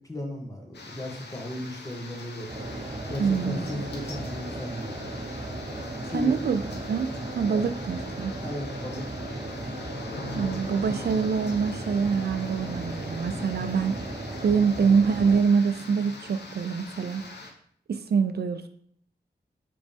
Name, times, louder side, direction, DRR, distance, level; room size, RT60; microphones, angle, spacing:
voice 1, 0.0-2.5 3.1-5.2 6.1-6.3 7.5-7.7 8.4-9.5, left 1 dB, 20° left, 1 dB, 1.5 m, -36 dB
sound 1, 0.7-17.5, left 3 dB, 85° left, 0.8 m, -43 dB
sound 2, 2.5-15.4, right 2 dB, 35° right, 1.0 m, -36 dB
voice 2, 3.2-3.6 6.1-6.6 6.9-8.3 10.4-14.0 14.4-17.2 17.9-18.7, right 6 dB, 70° right, 10 dB, 0.5 m, -25 dB
5.2 x 5.1 x 3.5 m, 0.63 s
cardioid pair, 55°, 17 cm